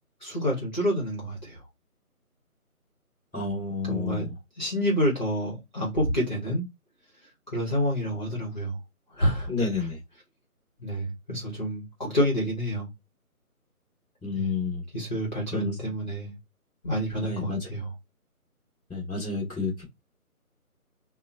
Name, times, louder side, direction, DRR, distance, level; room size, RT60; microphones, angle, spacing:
voice 1, 0.2-1.6 3.8-6.6 7.5-8.7 9.1-9.5 9.8-9.9 10.8-12.9 14.3-14.5 14.9-16.3 16.8-17.9, equal, 30° left, 0.9 m, -28 dB
voice 2, 3.3-4.3 9.5-10.0 14.2-14.8 15.5-15.7 17.2-17.6 18.9-19.8, left 3 dB, 5° left, 1.2 m, -30 dB
3.3 x 2.0 x 2.7 m
figure-of-eight pair, 160°, 45 cm